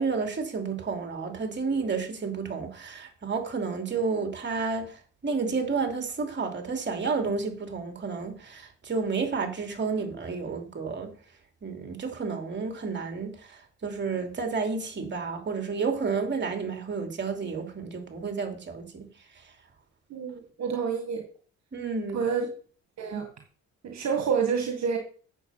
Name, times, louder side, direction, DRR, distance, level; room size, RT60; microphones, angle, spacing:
voice 1, 0.0-11.1 11.6-19.1 21.7-22.2, right 4 dB, 35° right, 2.9 m, -31 dB
voice 2, 20.1-21.2 22.1-22.5 23.0-23.3 23.8-25.0, right 6 dB, 65° right, 1.9 m, -28 dB
9.1 x 7.2 x 5.8 m
cardioid pair, 90°, 30 cm